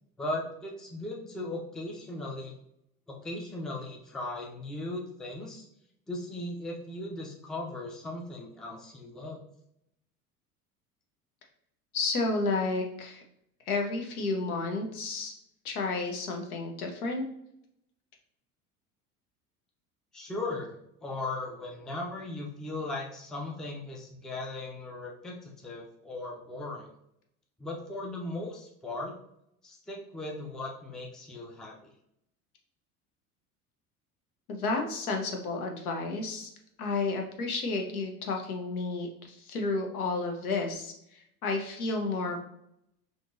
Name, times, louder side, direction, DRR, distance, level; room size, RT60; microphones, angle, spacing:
voice 1, 0.2-2.5 3.1-5.7 6.1-9.4 20.1-26.9 27.6-29.1 29.6-31.8, left 2 dB, ahead, -1 dB, 0.4 m, -38 dB
voice 2, 11.9-13.2 13.7-15.3 15.6-17.2 34.5-36.5 36.8-42.3, left 3 dB, 80° left, 2 dB, 0.8 m, -31 dB
3.7 x 2.3 x 2.6 m, 0.76 s
hypercardioid pair, 75°, 44 cm